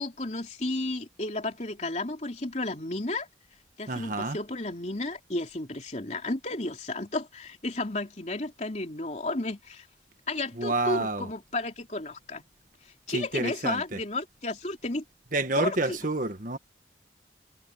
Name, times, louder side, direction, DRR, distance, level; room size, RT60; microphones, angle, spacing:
voice 1, 0.0-3.3 3.8-9.9 10.3-12.4 13.1-15.0 15.5-16.0, left 2 dB, 40° left, 3.4 m, -33 dB
voice 2, 3.9-4.4 10.5-11.3 13.1-14.0 15.3-16.6, right 2 dB, 50° right, 1.6 m, -29 dB
head